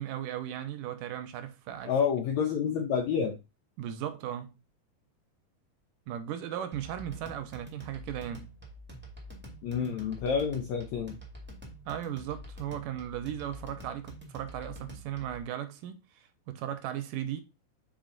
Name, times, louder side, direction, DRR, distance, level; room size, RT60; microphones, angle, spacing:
voice 1, 0.0-1.9 3.8-4.6 6.1-8.5 11.9-17.4, right 11 dB, 75° right, 2.2 m, -37 dB
voice 2, 1.9-3.4 9.6-11.2, left 6 dB, 70° left, 1.8 m, -29 dB
sound 1, 6.7-15.4, equal, 5° right, 1.0 m, -47 dB
7.2 x 4.6 x 3.9 m
omnidirectional pair, 4.1 m